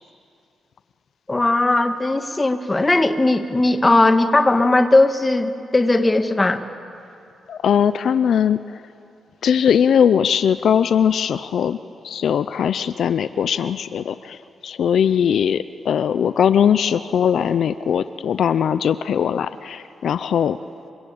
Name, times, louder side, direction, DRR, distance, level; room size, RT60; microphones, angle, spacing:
voice 1, 1.3-6.6, left 2 dB, 20° left, 8 dB, 1.6 m, -18 dB
voice 2, 7.5-8.8 9.4-11.8 12.0-20.6, left 8 dB, 75° left, 13 dB, 0.6 m, -20 dB
28.5 x 23.5 x 8.7 m, 2.6 s
cardioid pair, 90°, 0 cm